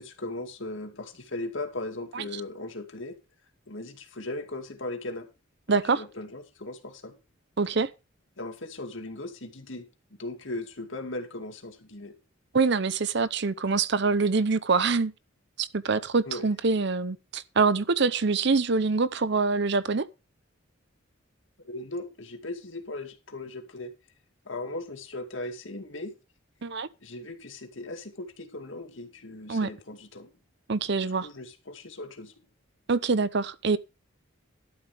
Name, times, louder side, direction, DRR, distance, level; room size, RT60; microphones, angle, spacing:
voice 1, 0.0-3.2 3.7-5.3 5.7-7.2 8.4-12.1 16.3-16.5 21.6-23.9 24.5-26.1 27.0-30.3 31.0-32.3, left 2 dB, 65° left, 2.3 m, -38 dB
voice 2, 5.7-6.0 7.6-7.9 12.5-15.1 15.6-20.1 26.6-26.9 29.5-29.7 30.7-31.3 32.9-33.8, right 4 dB, 55° right, 0.7 m, -25 dB
12.0 x 11.0 x 3.4 m
head